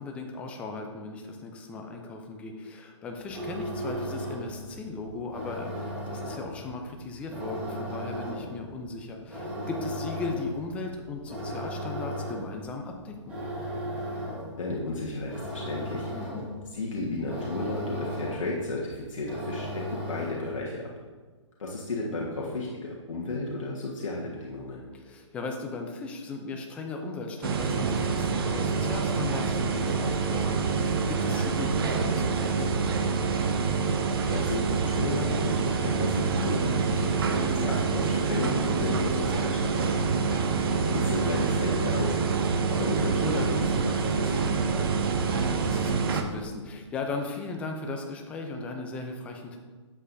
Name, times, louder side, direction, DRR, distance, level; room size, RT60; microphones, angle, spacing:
voice 1, 0.0-13.3 16.1-16.5 24.9-32.9 40.2-40.5 45.2-49.6, left 3 dB, 10° left, 3 dB, 0.4 m, -37 dB
sound 1, 3.2-20.6, equal, 10° right, 1.4 m, -37 dB
voice 2, 14.6-16.1 16.7-20.9 21.6-24.8 34.3-40.0 40.7-42.2 42.7-45.0, left 2 dB, 85° left, -4 dB, 1.5 m, -33 dB
sound 2, 27.4-46.2, right 5 dB, 50° right, 0.7 m, -26 dB
8.2 x 7.7 x 2.7 m, 1.4 s
hypercardioid pair, 160°, 16 cm